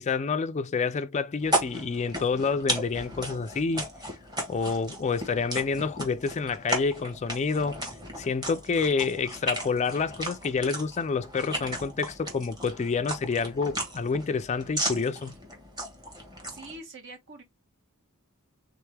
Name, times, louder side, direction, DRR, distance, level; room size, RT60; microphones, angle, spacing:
voice 1, 0.0-3.9 4.5-7.8 8.2-15.3, left 5 dB, 30° left, 0.3 m, -28 dB
sound 1, 1.4-16.8, right 1 dB, 20° right, 1.5 m, -35 dB
voice 2, 16.5-17.4, right 2 dB, 55° right, 1.2 m, -44 dB
3.6 x 3.4 x 3.3 m
head